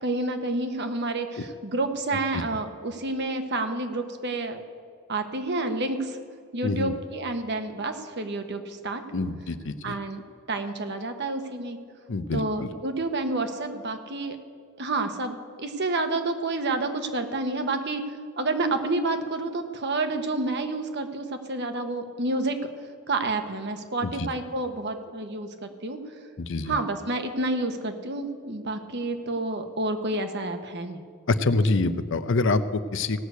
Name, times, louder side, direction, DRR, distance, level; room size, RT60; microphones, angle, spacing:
voice 1, 0.0-4.6 5.1-6.2 6.5-9.0 9.8-10.2 10.5-11.8 12.3-14.4 14.8-18.0 18.4-22.6 23.1-26.0 26.7-31.0, right 2 dB, 50° right, 7 dB, 1.1 m, -29 dB
voice 2, 6.6-6.9 9.1-10.0 12.1-12.7 24.0-24.3 26.4-26.8 31.3-33.3, left 3 dB, 60° left, 12 dB, 0.6 m, -26 dB
16.5 x 6.5 x 8.2 m, 2.1 s
head